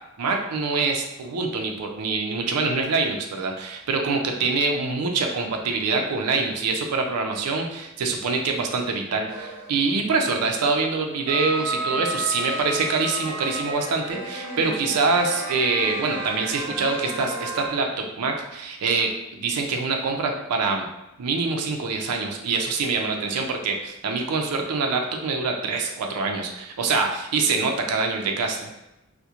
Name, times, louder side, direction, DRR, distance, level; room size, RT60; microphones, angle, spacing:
voice 1, 0.2-20.9 21.2-28.7, right 4 dB, 90° right, 3 dB, 0.4 m, -25 dB
sound 1, 9.3-10.0 11.3-17.7, right 1 dB, 20° right, 0.9 m, -32 dB
2.4 x 2.1 x 2.8 m, 0.95 s
head